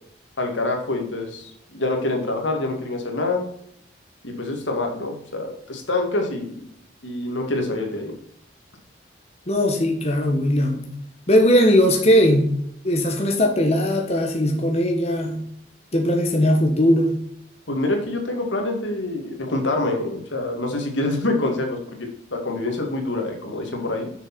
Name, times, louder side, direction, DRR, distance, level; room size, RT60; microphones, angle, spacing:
voice 1, 0.4-3.4 4.2-6.6 7.0-8.1 17.7-24.1, left 2 dB, 80° left, 3 dB, 2.3 m, -26 dB
voice 2, 9.5-10.9 11.3-12.6 12.8-15.4 15.9-17.2, equal, 35° left, 2 dB, 1.2 m, -19 dB
7.1 x 6.6 x 6.1 m, 0.70 s
head